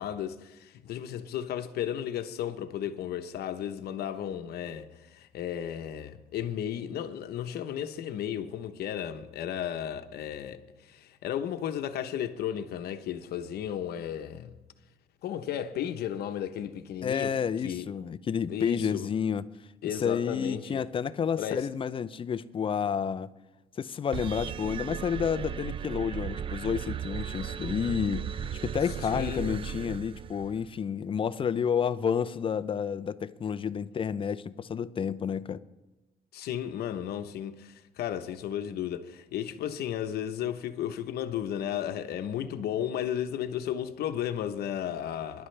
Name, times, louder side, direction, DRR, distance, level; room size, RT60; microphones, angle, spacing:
voice 1, 0.0-14.6 15.2-17.9 18.5-19.1 19.8-20.9 21.4-21.7 29.0-29.6 36.3-45.5, left 10 dB, 70° left, 1.0 m, -34 dB
voice 2, 17.0-19.5 19.8-23.3 23.8-35.6, left 7 dB, 30° left, 0.5 m, -30 dB
sound 1, 24.1-30.7, right 8 dB, 30° right, 0.4 m, -36 dB
22.5 x 11.0 x 3.3 m
cardioid pair, 110°, 17 cm